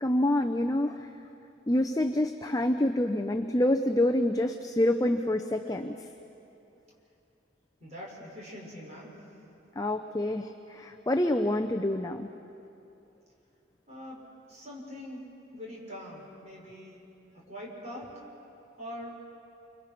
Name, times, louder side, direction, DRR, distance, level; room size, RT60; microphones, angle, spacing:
voice 1, 0.0-1.1 1.7-6.0 9.8-12.3, left 1 dB, 20° left, 5 dB, 0.6 m, -27 dB
voice 2, 7.8-9.2 13.9-14.2 14.5-15.2 15.5-17.0 17.3-18.2 18.8-19.2, left 1 dB, 35° right, -3 dB, 6.1 m, -43 dB
28.5 x 26.0 x 6.0 m, 2.8 s
head